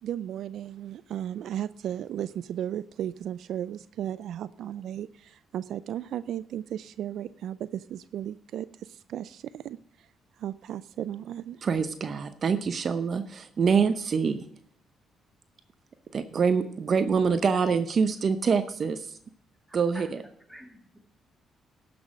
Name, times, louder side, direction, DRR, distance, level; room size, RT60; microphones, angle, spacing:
voice 1, 0.0-10.1 10.4-11.6, right 10 dB, 70° right, 16 dB, 0.3 m, -35 dB
voice 2, 11.6-14.4 16.1-19.1 19.7-20.2, right 5 dB, 50° right, 10 dB, 0.8 m, -25 dB
voice 3, 19.7-20.1 20.5-21.0, equal, ahead, 2 dB, 2.5 m, -48 dB
12.0 x 6.1 x 6.2 m, 0.63 s
supercardioid pair, 65°, 0 cm